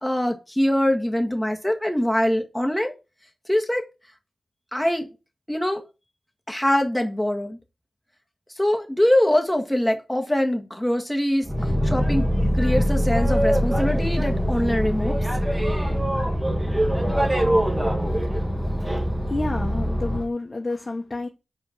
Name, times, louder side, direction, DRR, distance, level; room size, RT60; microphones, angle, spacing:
voice 1, 0.0-2.9 3.5-3.9 4.7-5.1 5.5-5.8 6.5-7.6 8.6-11.5 11.8-12.3 12.5-15.2, left 1 dB, 5° left, 1.7 m, -23 dB
Boat Water vehicle, 11.4-20.3, equal, 10° right, 1.6 m, -23 dB
voice 2, 19.3-21.3, left 2 dB, 35° left, 1.4 m, -29 dB
5.2 x 4.3 x 5.8 m
cardioid pair, 60°, 0 cm